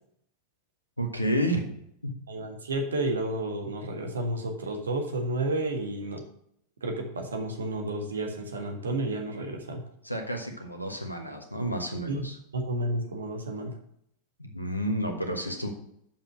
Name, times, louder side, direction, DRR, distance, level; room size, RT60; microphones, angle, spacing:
voice 1, 1.0-1.7 2.0-2.1 10.0-12.4 14.4-15.7, equal, 85° left, 4 dB, 1.2 m, -30 dB
voice 2, 2.3-6.2 6.8-9.8 12.1-12.2 12.5-13.7, right 1 dB, 70° right, 4 dB, 1.6 m, -31 dB
7.1 x 5.8 x 5.9 m, 0.72 s
figure-of-eight pair, 90°, 0 cm